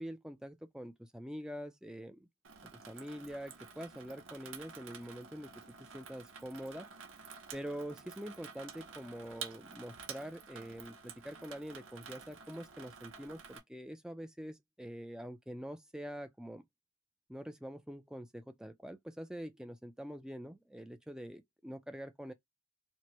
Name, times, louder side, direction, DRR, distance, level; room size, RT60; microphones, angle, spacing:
voice 1, 0.0-2.3 2.6-6.9 7.5-16.6 17.3-22.3, equal, 5° right, 0.4 m, -45 dB
Water tap faucet / Sink (filling or washing), 2.4-13.6, right 6 dB, 60° right, 0.8 m, -50 dB
4.4 x 2.1 x 2.9 m
head